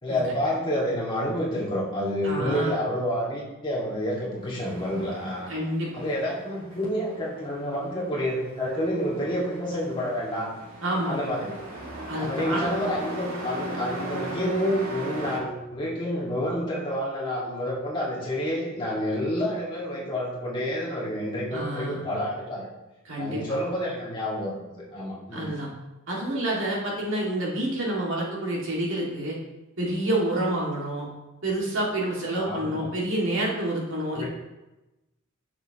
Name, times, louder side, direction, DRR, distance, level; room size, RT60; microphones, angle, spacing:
voice 1, 0.0-5.5 5.9-10.5 11.1-11.6 12.2-22.7 23.2-24.6 24.9-25.5 32.3-32.8 34.1-34.3, equal, 25° left, -5 dB, 1.9 m, -29 dB
voice 2, 2.2-2.7 5.5-6.0 10.8-11.2 12.1-12.7 21.5-22.0 23.0-23.6 25.3-25.7 26.1-29.4 29.8-31.1 31.4-34.3, right 1 dB, 60° right, -4 dB, 2.1 m, -28 dB
Truck, 4.3-15.4, right 1 dB, 85° right, 2.3 m, -38 dB
10.0 x 6.6 x 2.9 m, 1.0 s
head